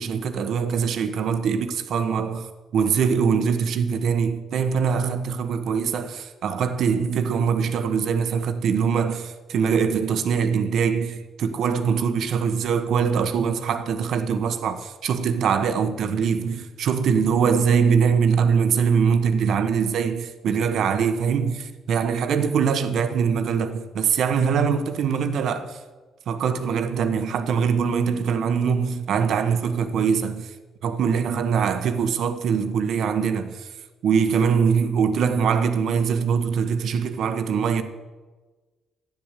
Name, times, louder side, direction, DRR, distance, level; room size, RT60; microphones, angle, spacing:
voice 1, 0.0-25.8 26.3-30.5 30.8-33.7 34.0-37.8, right 6 dB, 70° right, 1.3 m, -23 dB
13.5 x 9.9 x 8.3 m
cardioid pair, 90°, 0 cm